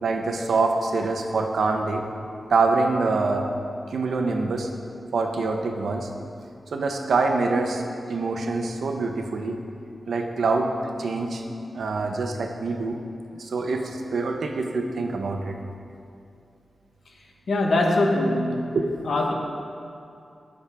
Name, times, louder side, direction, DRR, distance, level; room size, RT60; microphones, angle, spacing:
voice 1, 0.0-2.0 2.5-3.5 3.9-4.7 5.1-6.1 6.7-7.8 8.1-9.6 10.1-10.7 11.0-11.4 11.7-13.0 13.4-15.6 18.7-18.8, right 3 dB, 80° right, 3 dB, 0.9 m, -25 dB
voice 2, 17.5-18.8 19.0-19.3, left 2 dB, 70° left, 0 dB, 1.3 m, -22 dB
18.0 x 6.3 x 3.6 m, 2.5 s
wide cardioid pair, 165°, 0 cm